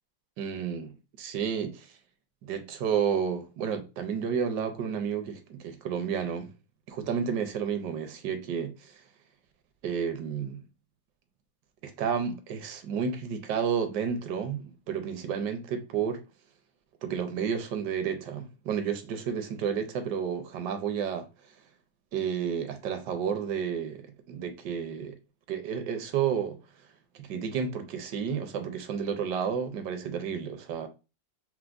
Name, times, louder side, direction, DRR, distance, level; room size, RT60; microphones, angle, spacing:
voice 1, 0.4-1.9 2.4-6.5 6.9-9.0 9.8-10.6 11.8-16.2 17.0-21.3 22.1-25.2 25.5-26.6 27.1-30.9, right 7 dB, 75° right, 1.1 m, -31 dB
4.5 x 2.1 x 2.4 m
omnidirectional pair, 2.0 m